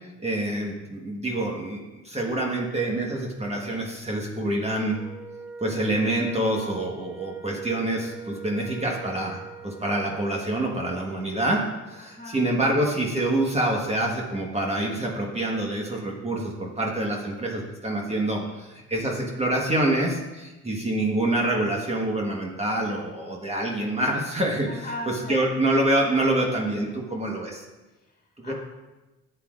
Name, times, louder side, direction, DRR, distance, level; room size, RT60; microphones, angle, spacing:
voice 1, 0.2-5.0 5.6-24.9 25.3-27.6 28.4-28.5, right 1 dB, 20° right, -1 dB, 1.4 m, -26 dB
Wind instrument woodwind instrument, 4.9-10.5, right 6 dB, 5° right, 0.8 m, -41 dB
voice 2, 12.0-12.4 18.1-18.5 24.7-25.4 28.0-28.5, left 1 dB, 30° left, -1 dB, 2.0 m, -39 dB
11.0 x 8.1 x 2.5 m, 1.1 s
cardioid pair, 90°, 30 cm